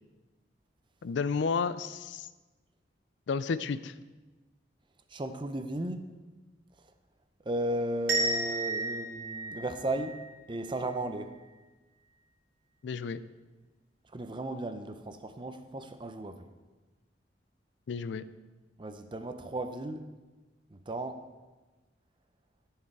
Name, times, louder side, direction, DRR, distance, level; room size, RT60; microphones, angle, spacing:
voice 1, 1.0-2.3 3.3-3.9 12.8-13.2 17.9-18.2, left 5 dB, 80° left, 15 dB, 0.4 m, -31 dB
voice 2, 5.1-6.0 7.5-10.2 10.5-11.3 14.1-16.4 18.8-20.0 20.7-21.2, right 1 dB, 25° right, 9 dB, 0.5 m, -35 dB
sound 1, 8.1-10.9, right 2 dB, 75° right, 2.0 m, -33 dB
13.5 x 4.7 x 4.7 m, 1.2 s
head